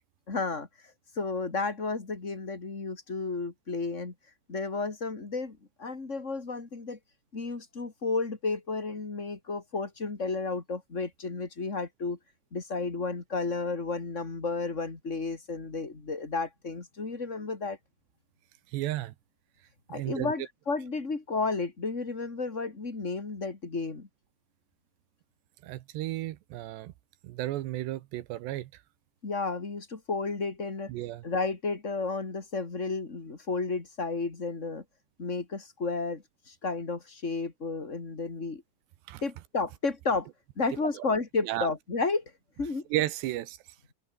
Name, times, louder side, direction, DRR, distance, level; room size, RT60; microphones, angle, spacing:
voice 1, 0.3-0.7 1.2-4.1 4.5-7.0 7.3-12.2 12.5-17.8 19.9-24.1 29.2-30.9 31.2-34.8 35.2-38.6 39.2-40.3 40.6-42.2 42.6-42.9, left 3 dB, 25° left, 1.9 m, -32 dB
voice 2, 18.7-19.1 19.9-20.3 25.6-26.9 27.2-28.8 30.9-31.2 39.1-39.2 40.9-41.0 41.4-41.7 42.9-43.6, right 15 dB, 75° right, 2.9 m, -33 dB
omnidirectional pair, 5.5 m